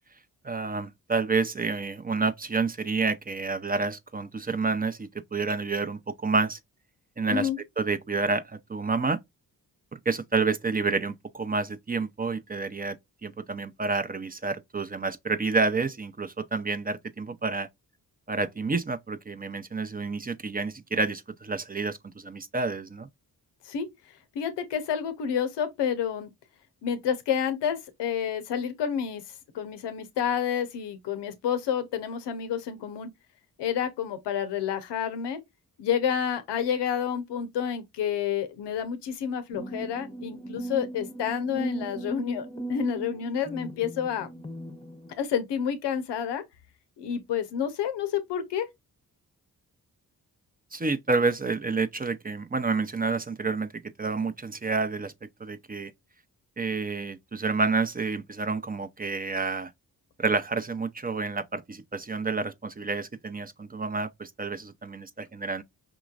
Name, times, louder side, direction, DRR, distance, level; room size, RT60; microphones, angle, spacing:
voice 1, 0.4-6.6 7.2-7.5 7.8-9.2 9.9-17.7 18.3-23.1 50.7-55.1 55.4-55.9 56.6-59.7 60.2-65.6, right 4 dB, 20° right, 0.5 m, -29 dB
voice 2, 7.3-7.6 23.6-23.9 24.3-26.3 26.8-33.1 33.6-35.4 35.8-44.3 45.2-46.4 47.0-48.7, left 8 dB, 90° left, 0.8 m, -29 dB
sound 1, 39.5-45.1, right 2 dB, 15° left, 0.8 m, -38 dB
5.0 x 3.0 x 2.4 m
supercardioid pair, 45°, 41 cm